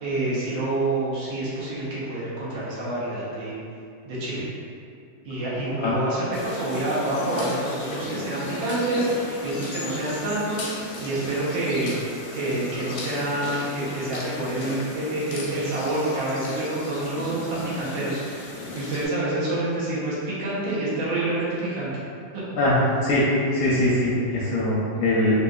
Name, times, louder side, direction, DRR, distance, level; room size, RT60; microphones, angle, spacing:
voice 1, 0.0-3.6 4.1-4.4 5.3-11.9 12.3-22.0 22.3-22.6, right 1 dB, 85° right, -8 dB, 1.6 m, -27 dB
sound 1, 6.3-19.1, left 2 dB, 90° left, 1.4 m, -36 dB
voice 2, 23.0-25.4, left 1 dB, 75° left, -7 dB, 1.0 m, -22 dB
3.6 x 2.7 x 2.3 m, 2.5 s
omnidirectional pair, 2.1 m